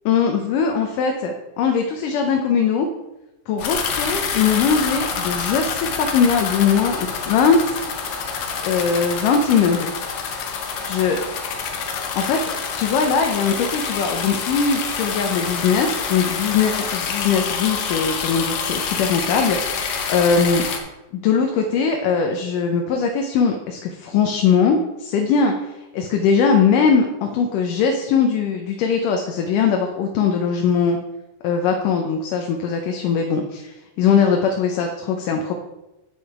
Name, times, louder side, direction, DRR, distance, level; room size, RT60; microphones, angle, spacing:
voice 1, 0.1-2.9 3.5-7.8 8.6-9.9 10.9-11.2 11.7-12.4 12.7-19.6 20.1-20.6 21.1-25.5 25.9-31.0 31.4-35.5, left 6 dB, 90° left, 3 dB, 2.4 m, -20 dB
sound 1, 3.6-20.8, left 6 dB, 65° left, 2.0 m, -27 dB
9.2 x 7.0 x 4.7 m, 1.0 s
omnidirectional pair, 3.7 m